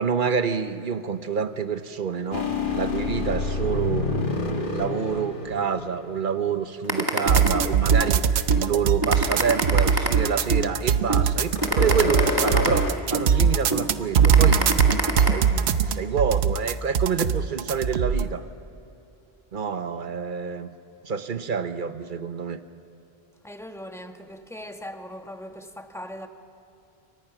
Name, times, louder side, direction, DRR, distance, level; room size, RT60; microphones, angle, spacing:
voice 1, 0.0-4.1 4.7-14.8 15.2-18.4 19.5-20.7 21.0-22.6, right 6 dB, 55° right, 1.1 m, -28 dB
sound 1, 2.3-6.6 11.5-13.0, left 3 dB, 55° left, 1.9 m, -28 dB
sound 2, 6.9-8.1 8.5-8.6 9.0-10.7 11.1-11.2 11.6-13.3 13.7-13.9 14.2-15.3, right 1 dB, 20° right, 1.9 m, -25 dB
sound 3, 7.3-18.3, right 7 dB, 85° right, 1.0 m, -21 dB
voice 2, 23.4-26.3, equal, 5° left, 1.2 m, -39 dB
28.5 x 23.5 x 5.9 m
omnidirectional pair, 1.1 m